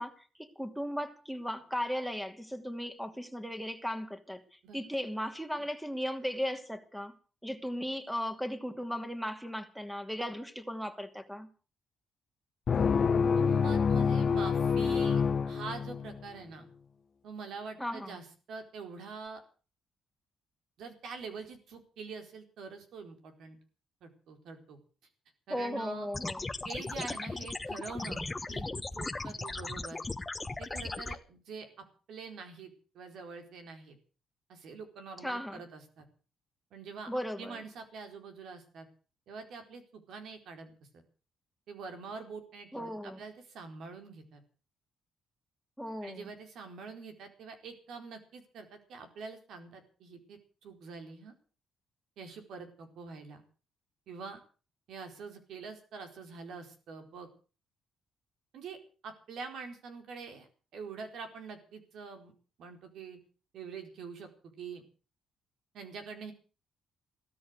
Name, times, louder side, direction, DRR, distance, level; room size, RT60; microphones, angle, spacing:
voice 1, 0.0-7.1 7.4-11.5 17.8-18.2 25.5-26.5 35.2-35.6 37.1-37.7 42.7-43.2 45.8-46.3, equal, ahead, 2.7 m, -37 dB
sound 1, 12.7-16.2, left 6 dB, 45° left, 1.0 m, -27 dB
voice 2, 13.1-16.6 17.2-19.4 20.8-23.6 24.0-24.8 25.5-26.1 26.6-30.0 30.6-31.7 32.1-34.0 34.5-36.0 36.7-37.1 37.4-38.9 39.3-41.0 41.7-44.4 46.0-51.3 52.2-53.4 54.1-54.4 54.9-57.3 58.5-58.8 59.0-60.5 60.7-62.3 62.6-63.2 63.5-64.3 64.6-64.8 65.7-66.3, right 5 dB, 75° right, 4.4 m, -45 dB
sound 2, 26.1-31.1, left 2 dB, 20° left, 1.2 m, -37 dB
16.0 x 13.0 x 6.6 m
cardioid pair, 90°, 0 cm